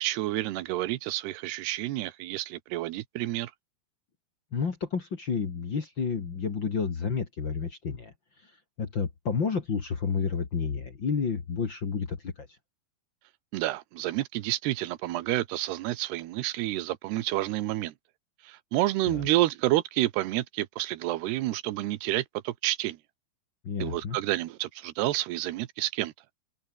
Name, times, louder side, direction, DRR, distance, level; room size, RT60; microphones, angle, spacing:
voice 1, 0.0-3.5 13.5-17.9 18.4-23.0 23.8-26.1, right 16 dB, 85° right, 3.1 m, -29 dB
voice 2, 4.5-8.1 8.8-12.5 19.1-19.2 23.6-24.2, left 5 dB, 35° left, 2.2 m, -30 dB
omnidirectional pair, 4.6 m